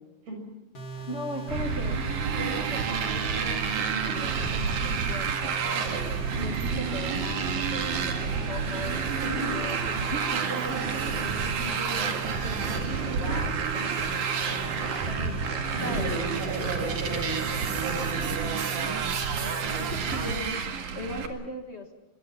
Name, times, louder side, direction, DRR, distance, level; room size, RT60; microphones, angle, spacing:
sound 1, 0.7-20.4, right 7 dB, 30° left, 3.3 m, -39 dB
voice 1, 0.9-2.0 2.4-6.0 6.4-9.0 9.5-16.9 18.2-18.5 19.8-21.9, left 2 dB, 70° left, 4 dB, 0.6 m, -39 dB
Motorcycle, 1.5-21.3, right 6 dB, 60° right, 3.2 m, -29 dB
voice 2, 9.2-9.8 15.7-19.0 19.4-19.8, right 2 dB, 80° right, 3 dB, 8.3 m, -34 dB
25.5 x 23.0 x 5.9 m, 1.1 s
omnidirectional pair, 4.2 m